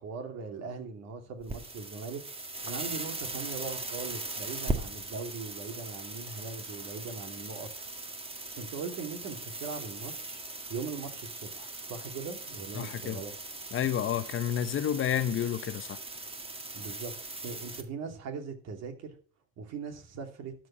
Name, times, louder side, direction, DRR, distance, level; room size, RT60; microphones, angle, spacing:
voice 1, 0.0-2.2 2.6-7.7 8.6-10.4 10.7-13.3 16.7-17.1 17.4-19.2 19.6-20.5, right 5 dB, 55° right, 2.8 m, -40 dB
sound 1, 1.4-17.8, right 2 dB, 15° right, 1.8 m, -39 dB
voice 2, 12.7-13.2 13.7-16.0, left 10 dB, 40° left, 0.9 m, -30 dB
12.5 x 4.8 x 7.3 m
supercardioid pair, 85°, 32 cm